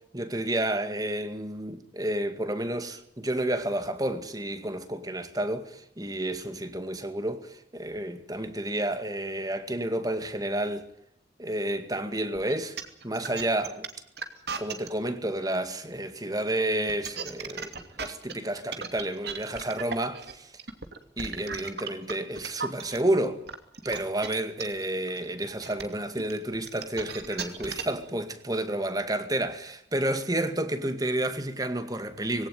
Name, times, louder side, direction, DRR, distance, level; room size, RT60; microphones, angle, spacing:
voice 1, 0.1-10.9 11.4-12.8 13.0-13.9 14.6-20.5 21.2-23.4 23.8-32.5, right 1 dB, 20° right, 2.1 m, -30 dB
sound 1, 12.4-14.9 16.7-23.0 23.5-28.0, right 5 dB, 60° right, 2.7 m, -36 dB
22.0 x 17.0 x 9.2 m
head